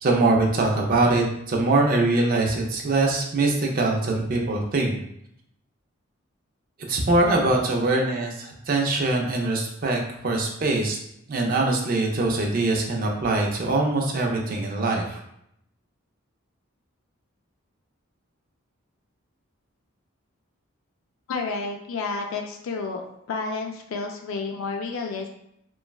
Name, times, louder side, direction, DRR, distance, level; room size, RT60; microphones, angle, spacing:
voice 1, 0.0-5.0 6.9-11.0 11.3-15.2, right 2 dB, 40° right, 0 dB, 0.4 m, -23 dB
voice 2, 21.3-25.3, left 4 dB, 70° left, 2 dB, 0.3 m, -30 dB
3.0 x 2.2 x 2.3 m, 0.75 s
head